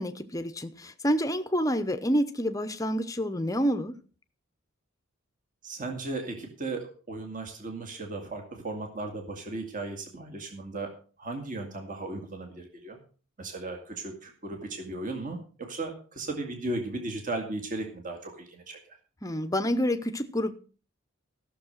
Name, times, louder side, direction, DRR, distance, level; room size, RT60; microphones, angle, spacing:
voice 1, 0.0-3.9 19.2-20.5, equal, 15° left, 0.8 m, -28 dB
voice 2, 5.6-10.9 11.2-13.0 13.4-19.0, right 2 dB, 35° right, 2.1 m, -36 dB
14.5 x 6.8 x 6.4 m
head